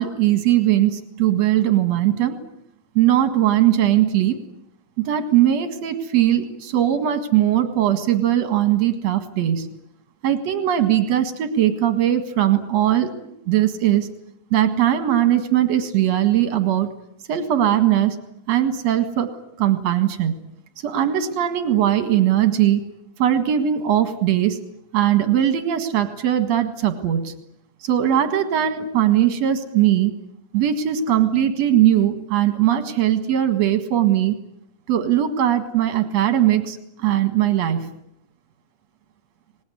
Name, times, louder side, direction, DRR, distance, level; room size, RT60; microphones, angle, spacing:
voice 1, 0.0-2.4 2.9-4.4 5.0-9.7 10.2-14.1 14.5-16.9 17.3-18.2 18.5-19.3 19.6-20.4 20.8-22.8 23.2-24.6 24.9-27.3 27.8-30.1 30.5-34.4 34.9-38.0, right 11 dB, 65° right, 9 dB, 1.6 m, -20 dB
26.0 x 20.0 x 9.7 m, 0.77 s
omnidirectional pair, 6.0 m